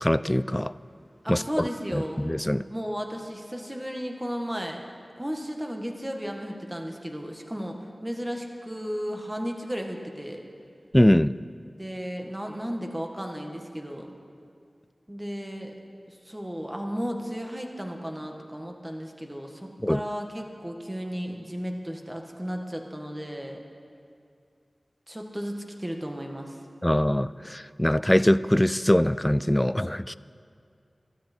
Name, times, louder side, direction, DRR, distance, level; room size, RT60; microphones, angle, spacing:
voice 1, 0.0-0.7 1.3-1.6 1.9-2.7 10.9-11.3 19.8-20.0 26.8-30.2, left 1 dB, 15° left, 16 dB, 0.3 m, -22 dB
voice 2, 1.2-2.2 2.7-4.8 5.2-10.4 11.8-14.1 15.1-15.7 16.1-23.6 25.1-26.6, equal, 15° right, 2 dB, 1.7 m, -34 dB
23.5 x 12.5 x 4.5 m, 2.4 s
wide cardioid pair, 65°, 0 cm